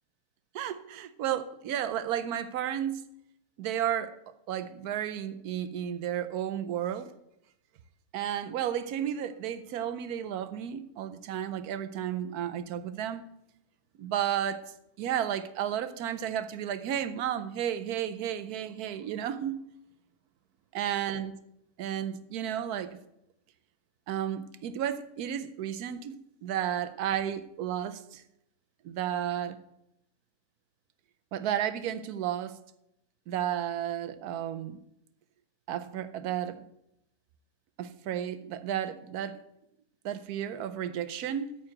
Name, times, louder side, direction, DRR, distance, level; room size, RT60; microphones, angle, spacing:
voice 1, 0.5-3.0 3.6-4.2 4.5-7.1 8.1-13.2 14.0-14.6 15.0-19.5 20.7-21.3 21.8-23.0 24.1-28.2 28.8-29.6 31.3-32.6 33.3-34.8 35.7-36.6 37.8-39.4 40.0-41.5, right 10 dB, 75° right, 1.1 m, -32 dB
9.0 x 4.8 x 7.6 m
omnidirectional pair, 1.7 m